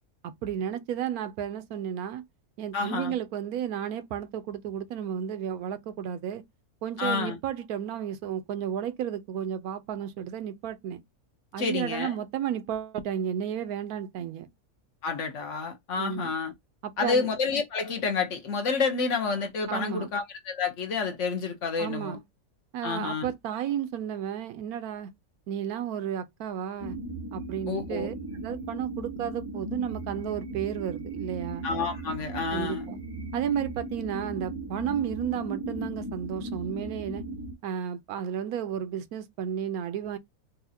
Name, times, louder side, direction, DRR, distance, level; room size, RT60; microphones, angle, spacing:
voice 1, 0.2-2.2 2.6-6.4 6.8-11.0 11.5-14.5 16.0-16.3 16.8-17.3 19.7-20.1 21.8-22.2 22.7-25.1 25.5-27.0 27.3-31.7 32.5-33.0 33.3-37.2 37.6-40.2, right 9 dB, 80° right, 1.1 m, -33 dB
voice 2, 2.7-3.1 7.0-7.4 11.6-12.1 15.0-16.5 17.0-22.2 22.8-23.3 27.7-28.1 31.6-32.8, left 4 dB, 60° left, 1.1 m, -29 dB
sound 1, 26.8-37.5, right 2 dB, 30° right, 0.4 m, -37 dB
4.0 x 2.4 x 2.7 m
omnidirectional pair, 1.6 m